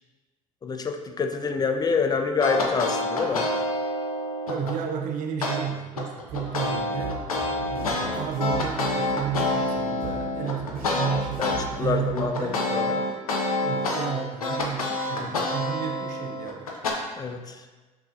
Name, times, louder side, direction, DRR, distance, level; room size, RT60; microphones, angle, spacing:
voice 1, 0.6-3.5 11.4-13.0 15.2-15.3 17.2-17.6, left 5 dB, 20° left, 6 dB, 0.3 m, -27 dB
sound 1, 2.4-4.8 5.4-5.6 6.0-11.6 12.0-16.9, left 2 dB, 85° left, 0.5 m, -27 dB
voice 2, 4.5-7.2 7.7-12.6 13.6-16.8, right 9 dB, 45° right, 3 dB, 0.5 m, -32 dB
sound 2, 6.3-12.2, right 2 dB, 80° right, 1.0 m, -39 dB
5.4 x 2.4 x 2.5 m, 1.3 s
figure-of-eight pair, 60°, 18 cm